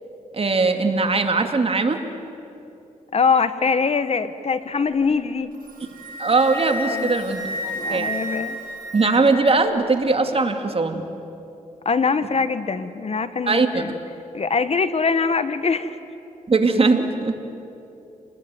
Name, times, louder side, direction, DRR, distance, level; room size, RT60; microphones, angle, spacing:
voice 1, 0.3-2.0 6.2-8.1 8.9-11.0 13.5-14.0 16.5-17.3, right 3 dB, 45° right, 5 dB, 2.5 m, -20 dB
voice 2, 3.1-5.5 6.9-7.1 7.7-8.6 11.8-13.9 14.3-16.0, left 5 dB, 50° left, 12 dB, 1.2 m, -22 dB
Wind instrument woodwind instrument, 5.5-9.5, equal, 85° right, 7.1 m, -31 dB
28.5 x 20.0 x 9.5 m, 2.9 s
cardioid pair, 65°, 14 cm